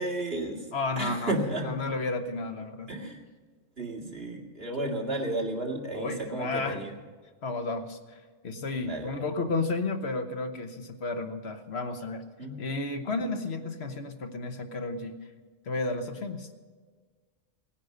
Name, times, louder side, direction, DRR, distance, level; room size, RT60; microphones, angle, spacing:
voice 1, 0.0-0.7 1.0-1.8 2.9-3.3 3.8-6.9 8.8-9.2 12.4-12.6, right 1 dB, 55° right, 0 dB, 2.5 m, -32 dB
voice 2, 0.7-1.3 1.6-2.9 5.9-6.8 7.4-12.2 12.6-15.2 15.6-16.5, left 3 dB, 60° left, 7 dB, 1.3 m, -32 dB
17.5 x 10.0 x 6.6 m, 1.5 s
omnidirectional pair, 1.3 m